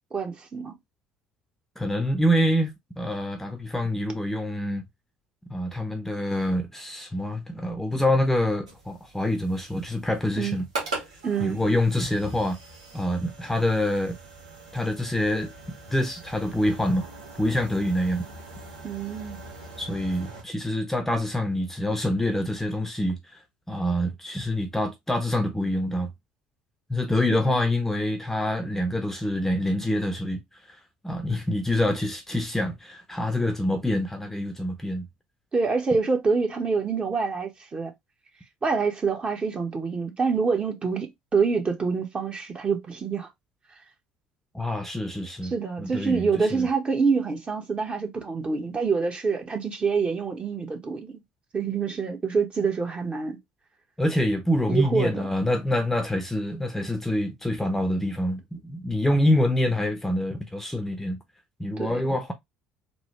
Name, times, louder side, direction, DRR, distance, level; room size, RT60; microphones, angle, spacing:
voice 1, 0.1-0.8 10.4-10.6 11.2-11.6 18.8-19.4 27.3-27.6 35.5-37.9 38.6-43.3 45.4-51.2 51.5-53.4 54.7-55.2 61.8-62.0, right 5 dB, 30° right, 1.3 m, -26 dB
voice 2, 1.8-4.8 5.5-10.6 11.4-12.6 12.9-14.2 14.7-15.5 15.9-17.1 17.4-18.2 19.8-23.2 23.7-26.1 26.9-30.4 31.0-35.1 44.5-45.5 45.8-46.7 54.0-61.2 61.6-62.3, left 1 dB, 10° left, 0.9 m, -26 dB
sound 1, 8.7-20.4, right 2 dB, 85° right, 1.3 m, -41 dB
4.0 x 2.3 x 3.1 m
hypercardioid pair, 60°, 4 cm